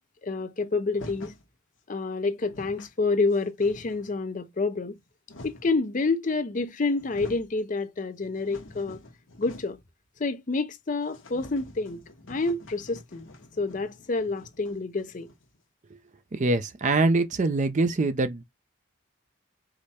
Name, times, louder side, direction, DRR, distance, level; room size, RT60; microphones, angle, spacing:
voice 1, 0.2-1.3 1.9-5.0 5.4-9.0 9.4-9.8 10.2-12.0 12.3-13.3 13.6-15.3, left 3 dB, 40° left, 0.5 m, -28 dB
sound 1, 0.9-1.5 2.1-2.2 2.4-2.9 3.3-4.2 4.9-5.8 6.6-6.7 6.9-7.5 7.9-9.9 10.2-10.3 10.6-10.7 11.1-15.6, left 1 dB, 70° left, 1.0 m, -47 dB
voice 2, 16.3-18.4, right 3 dB, 35° right, 0.4 m, -24 dB
4.9 x 2.1 x 4.1 m
head